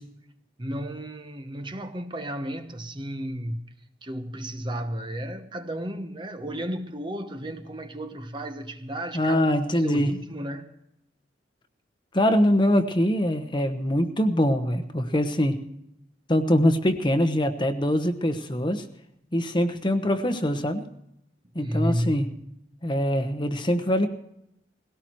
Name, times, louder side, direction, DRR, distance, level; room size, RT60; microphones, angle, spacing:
voice 1, 0.6-3.6 4.0-9.4 9.7-10.7 21.6-22.3, equal, 25° right, 1.0 m, -33 dB
voice 2, 9.1-10.1 12.1-15.6 16.3-18.8 19.3-20.9 21.5-22.3 22.8-24.1, equal, 25° left, 1.1 m, -23 dB
20.5 x 17.5 x 3.1 m
head